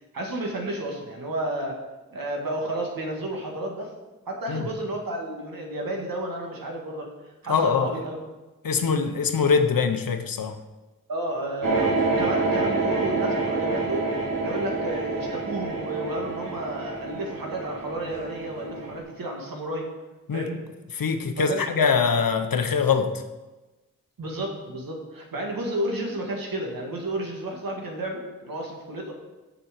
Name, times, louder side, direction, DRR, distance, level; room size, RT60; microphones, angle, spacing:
voice 1, 0.1-1.8 2.1-3.9 4.3-7.1 7.4-8.3 11.1-14.1 14.4-19.9 20.3-20.6 21.4-21.9 24.2-29.1, right 1 dB, 85° right, 0 dB, 2.0 m, -31 dB
voice 2, 7.5-7.9 8.6-10.6 20.3-20.5 20.9-23.2, left 5 dB, 85° left, 7 dB, 0.9 m, -23 dB
sound 1, 11.6-19.0, right 3 dB, 70° right, 2.9 m, -27 dB
6.9 x 6.1 x 7.6 m, 1.1 s
wide cardioid pair, 115°, 33 cm